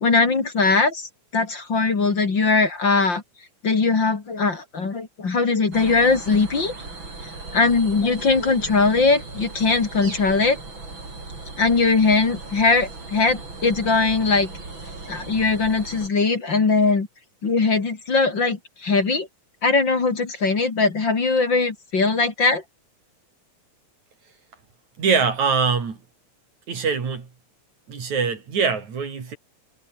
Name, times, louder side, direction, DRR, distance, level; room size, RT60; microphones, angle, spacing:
voice 1, 0.0-1.1 1.3-3.2 3.6-6.7 7.5-10.6 11.6-14.5 15.1-17.1 17.4-19.3 19.6-22.6, left 4 dB, 40° left, 3.3 m, -20 dB
sound 1, 5.7-16.1, right 3 dB, 40° right, 6.4 m, -37 dB
voice 2, 25.0-26.0 26.7-27.3 27.9-29.4, right 5 dB, 70° right, 5.2 m, -23 dB
omnidirectional pair, 3.4 m